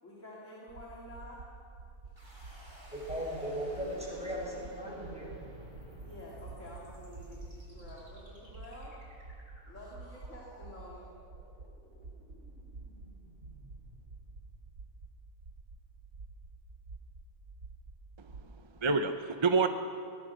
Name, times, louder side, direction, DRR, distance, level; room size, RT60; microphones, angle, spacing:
voice 1, 0.0-1.4 5.9-9.0 9.6-11.1, left 1 dB, 85° left, -5 dB, 3.3 m, -49 dB
sound 1, 0.7-18.5, right 3 dB, 75° right, 1.6 m, -50 dB
sound 2, 2.2-15.1, equal, 50° right, 5.1 m, -54 dB
voice 2, 2.9-5.4, equal, 5° right, -4 dB, 6.7 m, -37 dB
voice 3, 18.2-19.7, right 4 dB, 25° right, 7 dB, 0.7 m, -29 dB
22.5 x 18.0 x 6.4 m, 2.4 s
omnidirectional pair, 1.3 m